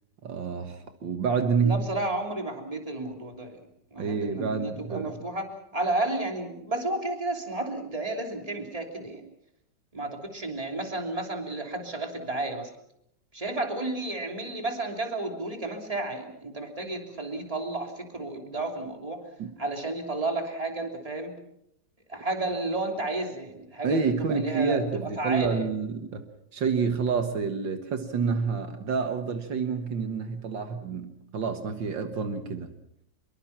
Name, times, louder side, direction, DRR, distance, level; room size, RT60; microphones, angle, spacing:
voice 1, 0.2-1.9 4.0-5.2 19.4-19.5 23.8-26.3 26.5-32.7, right 5 dB, 75° right, 7 dB, 2.2 m, -28 dB
voice 2, 1.6-3.6 3.9-5.5 5.7-9.2 9.9-12.7 13.3-19.2 19.6-21.4 22.1-25.7, right 2 dB, 20° right, 3 dB, 3.2 m, -32 dB
25.0 x 23.0 x 6.0 m, 0.77 s
omnidirectional pair, 2.0 m